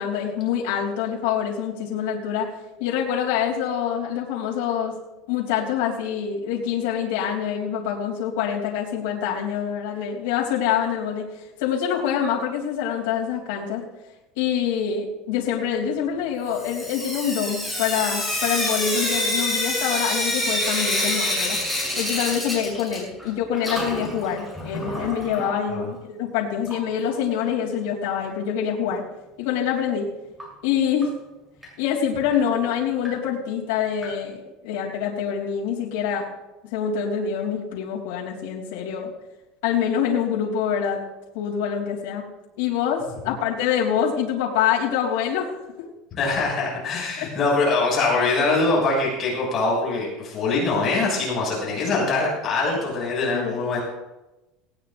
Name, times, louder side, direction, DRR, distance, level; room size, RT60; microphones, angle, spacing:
voice 1, 0.0-2.5 2.8-5.0 5.3-13.8 14.4-21.6 22.0-29.0 29.4-30.1 30.6-31.1 31.8-36.3 36.7-39.1 39.6-41.0 41.3-42.2 42.6-45.5 47.2-47.3 53.3-53.6, left 8 dB, 85° left, -3 dB, 3.1 m, -25 dB
Sink (filling or washing) / Drip, 16.5-23.3 23.5-25.5 26.6-26.7 27.1-27.2 27.4-27.5 30.4-30.5 31.0-31.1 31.6-31.7 32.3-32.4 33.0-33.1 34.0-34.1, left 1 dB, 5° right, 6.7 m, -27 dB
voice 2, 46.1-53.8, left 3 dB, 30° left, -4 dB, 6.5 m, -23 dB
18.5 x 18.5 x 2.6 m, 1.0 s
cardioid pair, 165°, 0 cm